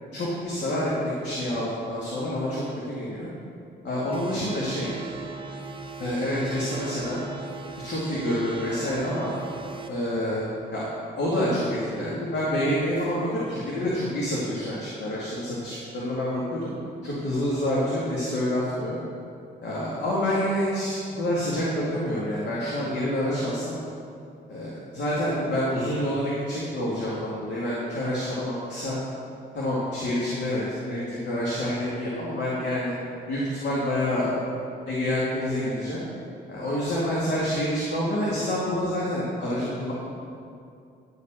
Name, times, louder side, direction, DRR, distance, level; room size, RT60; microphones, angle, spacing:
voice 1, 0.1-3.3 3.8-4.9 6.0-7.2 7.8-9.3 9.9-10.4 10.7-10.9 11.2-16.7 17.0-19.0 19.6-23.7 24.5-29.0 29.5-32.9 33.3-34.3 34.9-36.0 36.5-39.9, left 1 dB, 65° left, -7 dB, 2.3 m, -27 dB
sound 1, 4.1-9.9, right 4 dB, 25° right, 0.9 m, -39 dB
11.5 x 5.0 x 7.7 m, 2.5 s
cardioid pair, 90°, 20 cm